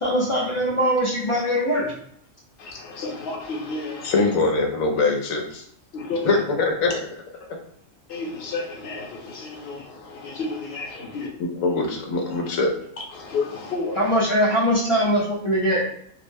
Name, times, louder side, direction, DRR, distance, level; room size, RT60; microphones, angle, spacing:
voice 1, 0.0-1.9 14.0-15.8, equal, 40° left, -5 dB, 0.4 m, -21 dB
voice 2, 2.6-4.3 5.9-6.3 8.1-11.3 13.1-14.2, left 3 dB, 60° left, -1 dB, 0.9 m, -31 dB
voice 3, 4.0-5.6 6.2-6.9 11.4-12.7, left 3 dB, 85° left, 2 dB, 1.0 m, -22 dB
2.5 x 2.1 x 3.3 m, 0.65 s
omnidirectional pair, 1.4 m